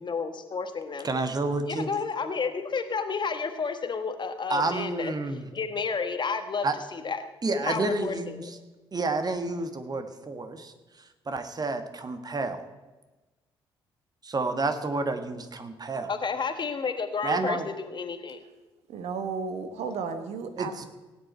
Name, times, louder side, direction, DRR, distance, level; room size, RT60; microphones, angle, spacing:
voice 1, 0.0-1.1 1.7-5.1 5.5-6.7 6.9-7.2 7.6-8.5 16.1-18.4, left 5 dB, 35° left, 9 dB, 1.4 m, -31 dB
voice 2, 1.0-1.9 4.5-5.5 6.6-6.7 7.4-8.6 8.9-10.7 11.3-12.6 14.2-16.1 17.2-17.7 20.6-20.9, right 3 dB, 30° right, 8 dB, 1.5 m, -29 dB
voice 3, 18.9-20.9, right 5 dB, 60° right, 8 dB, 1.3 m, -33 dB
17.5 x 9.3 x 4.4 m, 1.2 s
figure-of-eight pair, 45°, 13 cm